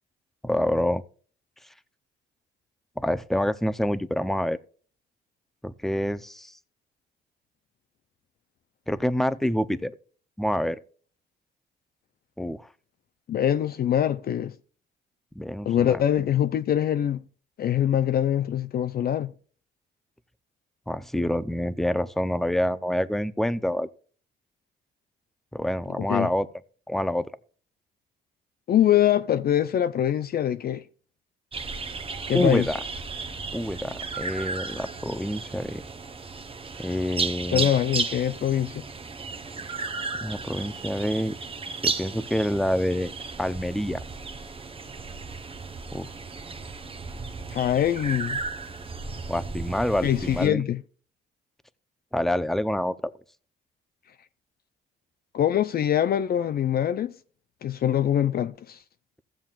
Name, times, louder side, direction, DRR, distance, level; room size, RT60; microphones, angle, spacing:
voice 1, 0.4-1.0 3.0-4.6 5.6-6.5 8.9-9.9 10.4-10.8 12.4-12.7 15.4-16.0 20.9-23.9 25.5-26.5 26.9-27.3 32.3-32.8 33.5-35.8 36.8-37.7 40.2-41.4 41.8-43.1 43.4-44.0 45.9-46.1 49.3-50.6 52.1-53.1, left 1 dB, ahead, 0.5 m, -27 dB
voice 2, 13.3-14.5 15.7-17.2 17.6-19.3 26.1-26.3 28.7-30.8 32.3-32.7 37.5-38.8 47.5-48.4 50.0-50.8 55.3-57.1 57.6-58.8, left 10 dB, 50° left, 0.5 m, -23 dB
sound 1, 31.5-50.5, right 4 dB, 30° right, 0.8 m, -34 dB
15.5 x 7.4 x 2.4 m
cardioid pair, 90°, 20 cm